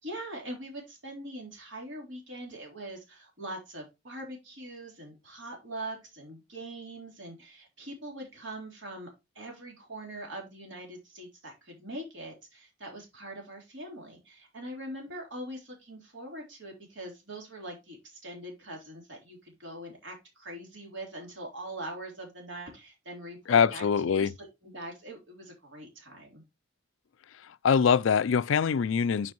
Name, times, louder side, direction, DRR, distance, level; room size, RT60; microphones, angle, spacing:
voice 1, 0.0-9.1 9.4-26.4, right 1 dB, 65° right, 3.9 m, -42 dB
voice 2, 23.5-24.3 27.6-29.3, left 6 dB, 80° left, 0.4 m, -23 dB
9.4 x 5.6 x 3.0 m
head